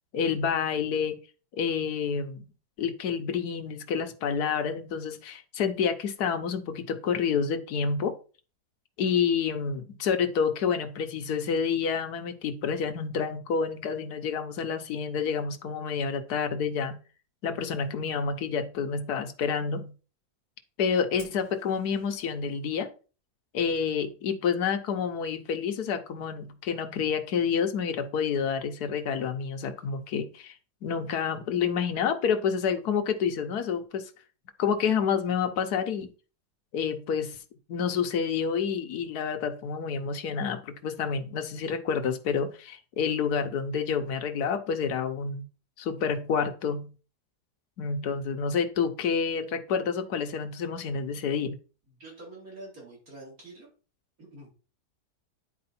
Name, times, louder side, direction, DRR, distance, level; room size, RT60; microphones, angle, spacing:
voice 1, 0.1-1.2 1.5-2.5 2.8-8.1 9.0-17.0 17.4-19.9 20.8-22.9 23.5-30.5 30.8-34.0 34.6-36.1 36.7-37.4 37.7-45.5 45.8-46.9 47.8-51.6, left 6 dB, 75° left, 6 dB, 1.5 m, -28 dB
Fire, 21.2-22.3, right 1 dB, 85° right, 4.7 m, -52 dB
voice 2, 51.9-53.7 54.2-54.5, right 2 dB, 60° right, -3 dB, 4.2 m, -46 dB
9.7 x 4.7 x 4.2 m, 0.35 s
omnidirectional pair, 1.7 m